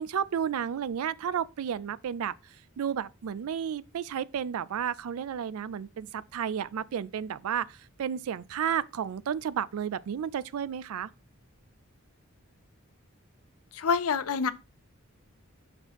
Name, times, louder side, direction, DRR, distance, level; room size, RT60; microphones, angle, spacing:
voice 1, 0.0-11.1, right 8 dB, 90° right, 0.4 m, -32 dB
voice 2, 13.7-14.5, left 5 dB, 80° left, 0.5 m, -26 dB
5.9 x 3.0 x 5.4 m
head